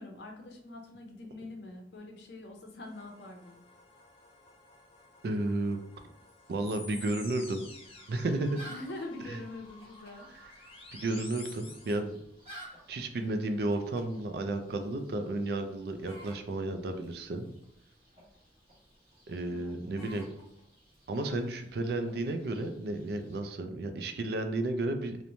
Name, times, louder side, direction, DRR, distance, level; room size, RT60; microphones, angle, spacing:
voice 1, 0.0-3.6 8.7-10.3 19.5-20.4, left 2 dB, 75° left, 2 dB, 0.6 m, -45 dB
sound 1, 2.8-12.0, left 3 dB, 30° left, 0.4 m, -51 dB
voice 2, 5.2-5.8 6.5-7.6 8.1-8.6 9.3-9.4 10.9-12.2 12.9-17.5 19.3-20.3 21.1-25.2, right 2 dB, 60° right, 7 dB, 0.3 m, -32 dB
sound 2, 7.6-23.4, right 1 dB, 35° right, 1.0 m, -55 dB
2.9 x 2.1 x 2.6 m, 0.78 s
head